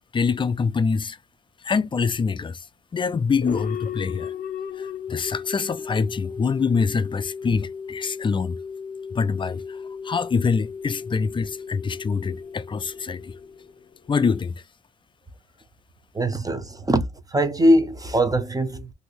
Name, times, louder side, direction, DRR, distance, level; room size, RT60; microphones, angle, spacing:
voice 1, 0.1-1.2 1.6-2.6 2.9-4.3 4.8-8.6 9.1-13.3 14.1-14.6, left 5 dB, 25° left, 0.4 m, -25 dB
sound 1, 3.4-14.1, left 6 dB, 45° left, 0.8 m, -35 dB
voice 2, 16.1-18.9, right 1 dB, 20° right, 0.6 m, -21 dB
3.1 x 2.7 x 2.9 m
cardioid pair, 90°, 20 cm